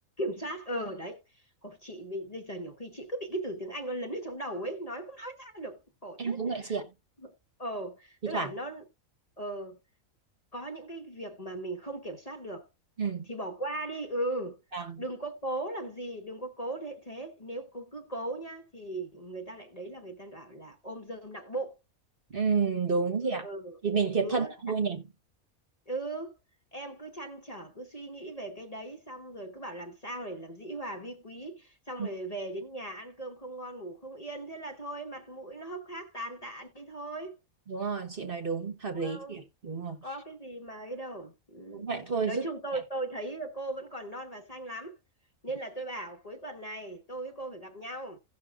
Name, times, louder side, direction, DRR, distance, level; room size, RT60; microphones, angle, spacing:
voice 1, 0.2-1.2 1.6-6.8 7.2-7.3 7.6-8.8 9.4-9.8 10.5-12.7 13.3-14.6 15.0-21.7 23.2-23.8 24.2-24.8 25.9-26.3 26.7-37.4 38.9-39.4 40.0-41.9 42.3-44.9 45.4-48.2, right 1 dB, 30° left, 1.1 m, -38 dB
voice 2, 6.2-6.9 8.2-8.5 13.0-13.3 14.7-15.0 22.3-23.4 23.8-25.0 32.0-32.1 37.7-40.0 41.7-42.5, right 5 dB, 40° right, 1.3 m, -30 dB
16.5 x 6.2 x 2.4 m
omnidirectional pair, 1.5 m